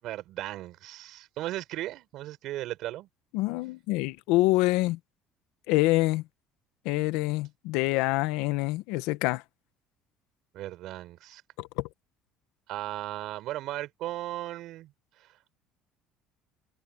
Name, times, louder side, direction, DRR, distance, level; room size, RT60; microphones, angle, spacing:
voice 1, 0.0-3.1 10.5-11.4 12.7-15.5, right 15 dB, 65° right, 5.6 m, -37 dB
voice 2, 3.3-5.0 5.7-6.2 6.8-9.4 11.6-11.9, left 19 dB, 80° left, 1.1 m, -26 dB
cardioid pair, 115°, 0 cm